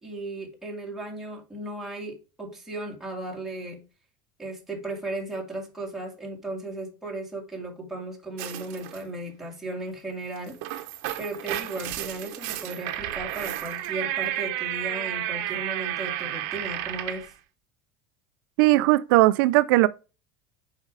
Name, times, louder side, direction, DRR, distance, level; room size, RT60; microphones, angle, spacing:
voice 1, 0.0-3.8 4.4-10.6 11.2-17.3, right 2 dB, 5° right, 1.9 m, -36 dB
sound 1, 8.4-9.0 10.4-17.3, right 13 dB, 65° right, 0.9 m, -32 dB
voice 2, 18.6-19.9, right 19 dB, 85° right, 0.4 m, -18 dB
6.5 x 5.2 x 4.7 m
cardioid pair, 160°, 11 cm